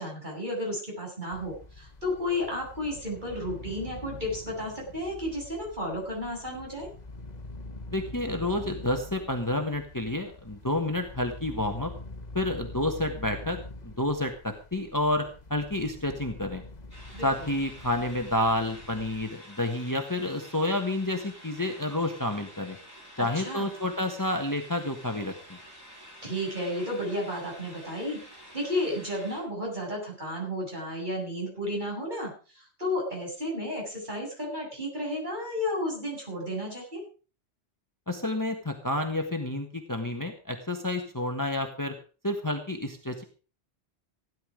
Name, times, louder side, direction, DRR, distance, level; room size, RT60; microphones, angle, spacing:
voice 1, 0.0-6.9 17.1-17.3 23.2-23.7 26.2-37.0, left 1 dB, 40° right, -2 dB, 7.8 m, -33 dB
sound 1, 1.3-19.2, left 2 dB, 40° left, 1.4 m, -45 dB
voice 2, 7.9-11.9 12.3-13.6 13.8-16.6 17.2-22.8 23.2-25.3 38.1-41.9 42.2-43.2, left 1 dB, 15° left, 5 dB, 1.5 m, -29 dB
sound 2, 16.9-29.4, equal, 15° right, 7.7 m, -49 dB
16.5 x 11.0 x 5.1 m, 0.37 s
omnidirectional pair, 1.2 m